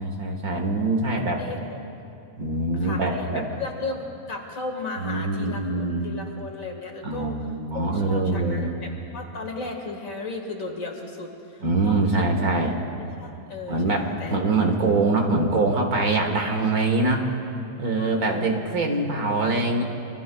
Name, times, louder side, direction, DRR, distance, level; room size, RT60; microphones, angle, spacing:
voice 1, 0.0-1.4 2.4-3.5 5.0-6.0 7.0-8.7 11.6-12.8 13.7-17.3 17.8-19.8, right 2 dB, 65° right, 2 dB, 1.9 m, -24 dB
voice 2, 1.4-1.8 2.8-7.4 7.7-12.2 13.2-14.6 18.0-18.5, left 3 dB, 60° left, 1 dB, 2.2 m, -35 dB
27.0 x 23.0 x 2.3 m, 2.6 s
omnidirectional pair, 1.7 m